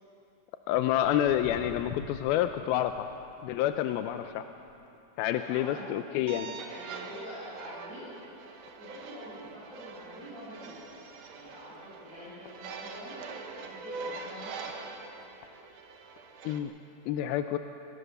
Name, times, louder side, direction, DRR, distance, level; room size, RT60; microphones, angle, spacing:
voice 1, 0.7-3.1 3.4-4.5 5.2-6.5 16.4-16.7 17.1-17.6, left 11 dB, 90° left, 8 dB, 2.5 m, -28 dB
Walk footsteps, 0.8-7.4 7.8-8.1 8.7-8.8 9.4-9.5 9.9-10.0 10.2-10.3 10.9-11.1 11.7-13.3 13.9-14.0 14.7-14.8 15.2-15.5 16.2-16.3, left 6 dB, 65° left, 2.2 m, -49 dB
voice 2, 5.3-6.0 6.6-8.1 8.7-11.0 11.3-13.2 13.6-14.9, equal, 20° right, -12 dB, 7.3 m, -46 dB
sound 1, 6.3-16.6, right 4 dB, 65° right, 2.6 m, -44 dB
24.0 x 18.0 x 6.8 m, 2.7 s
omnidirectional pair, 4.3 m